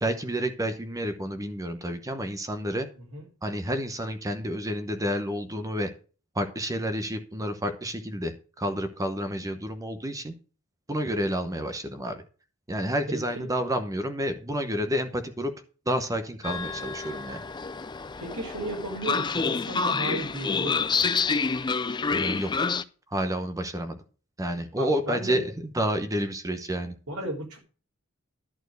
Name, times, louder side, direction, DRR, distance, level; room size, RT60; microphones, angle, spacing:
voice 1, 0.0-2.9 3.4-5.9 6.3-10.3 10.9-12.2 12.7-15.5 15.9-17.4 22.1-22.6 23.1-24.0 24.4-27.0, equal, 15° right, 8 dB, 0.8 m, -30 dB
voice 2, 13.1-13.5 18.2-21.1 24.8-25.4 27.1-27.6, right 1 dB, 85° right, -2 dB, 3.7 m, -35 dB
Train, 16.4-22.8, left 4 dB, 20° left, 0.4 m, -28 dB
11.5 x 4.4 x 8.0 m, 0.37 s
head